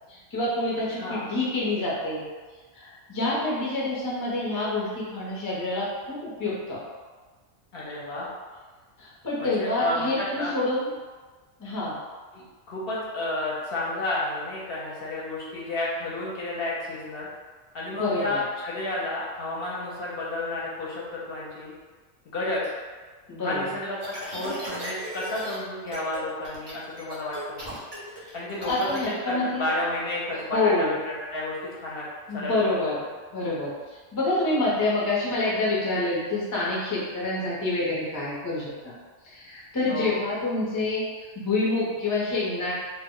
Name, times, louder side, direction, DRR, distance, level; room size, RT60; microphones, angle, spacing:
voice 1, 0.1-2.2 2.7-6.8 9.0-10.9 11.6-11.9 17.9-18.4 23.3-23.6 28.2-28.3 28.6-29.7 30.5-30.9 32.3-33.0 33.3-33.7 34.1-38.9 39.2-42.7, left 2 dB, 30° left, -6 dB, 0.3 m, -27 dB
voice 2, 1.0-1.3 7.7-8.3 9.4-10.5 12.3-17.3 17.7-21.7 22.3-22.6 23.4-24.0 24.3-27.7 28.3-32.1 32.3-32.9 39.8-40.1, left 2 dB, 60° left, -6 dB, 0.7 m, -31 dB
sound 1, 24.0-25.6 25.9-26.2 26.4-29.1, equal, 35° right, 0.4 m, -37 dB
2.1 x 2.1 x 3.6 m, 1.4 s
omnidirectional pair, 1.3 m